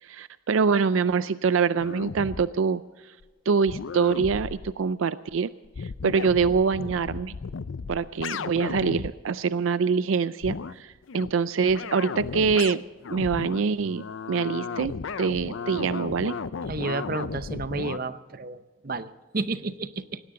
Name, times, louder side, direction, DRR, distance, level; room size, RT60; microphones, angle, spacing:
voice 1, 0.0-2.8 3.5-5.5 5.8-7.4 7.9-12.8 13.1-16.4, right 5 dB, 75° right, 15 dB, 0.4 m, -25 dB
sound 1, 1.8-2.5 3.2-3.3 3.7-4.8 5.3-5.4 5.6-9.1 10.4-10.8 11.1-11.3 11.7-18.0, left 5 dB, 70° left, 0.5 m, -35 dB
voice 2, 16.7-20.2, right 3 dB, 45° right, 12 dB, 0.7 m, -31 dB
19.0 x 17.0 x 3.8 m, 1.3 s
head